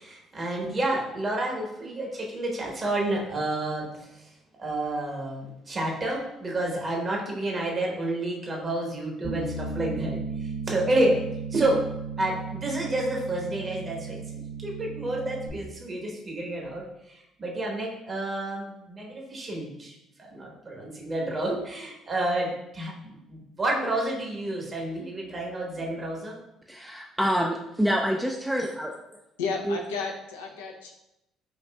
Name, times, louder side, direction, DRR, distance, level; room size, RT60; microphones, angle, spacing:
voice 1, 0.0-4.3 4.6-11.2 11.5-11.8 12.2-26.4, right 1 dB, 40° right, -1 dB, 1.1 m, -30 dB
Bass guitar, 9.2-15.5, right 4 dB, 60° right, 0.7 m, -35 dB
voice 2, 26.7-29.0 29.7-29.8, equal, 5° right, 0 dB, 0.4 m, -27 dB
voice 3, 29.4-30.9, left 5 dB, 85° left, 0 dB, 0.5 m, -32 dB
5.1 x 2.5 x 2.2 m, 0.87 s
hypercardioid pair, 55°, 0 cm